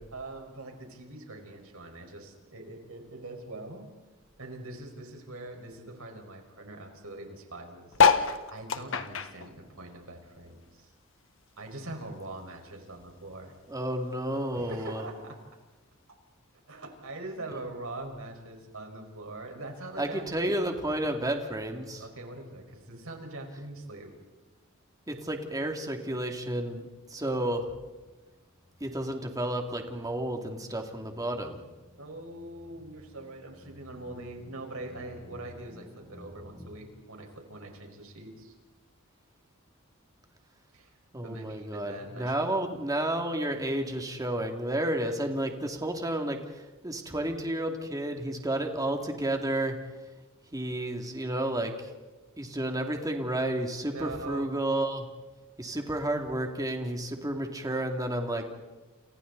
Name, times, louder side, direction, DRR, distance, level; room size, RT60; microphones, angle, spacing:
voice 1, 0.1-3.9 4.4-10.9 11.6-13.5 14.6-15.4 16.7-20.2 22.0-24.1 32.0-38.5 40.7-40.9 41.2-42.4 53.9-54.5, right 2 dB, 75° right, 3 dB, 5.4 m, -43 dB
sound 1, 7.9-10.7 11.0-12.6 13.0-13.1 13.3-13.4 13.6-14.0 14.8-14.9, left 5 dB, 65° left, 1.6 m, -27 dB
voice 2, 13.7-15.0 20.0-22.0 25.1-27.7 28.8-31.6 41.1-49.8 50.5-51.9 52.4-55.0 55.6-58.5, right 1 dB, 15° right, 3 dB, 2.7 m, -31 dB
sound 2, 28.0-36.7, equal, ahead, 6.8 m, -54 dB
29.5 x 29.5 x 4.2 m, 1.2 s
head